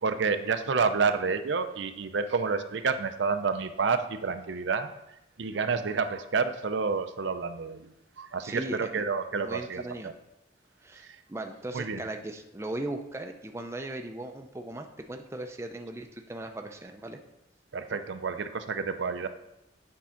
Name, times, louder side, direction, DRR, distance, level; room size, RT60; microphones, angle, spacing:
voice 1, 0.0-4.9 5.4-7.9 8.2-10.1 11.1-11.2 11.7-12.0 17.7-19.3, right 5 dB, 70° right, 9 dB, 0.5 m, -29 dB
voice 2, 8.4-9.0 9.3-10.1 10.8-17.2, right 1 dB, 15° right, 4 dB, 0.5 m, -38 dB
8.5 x 3.7 x 5.7 m, 0.91 s
head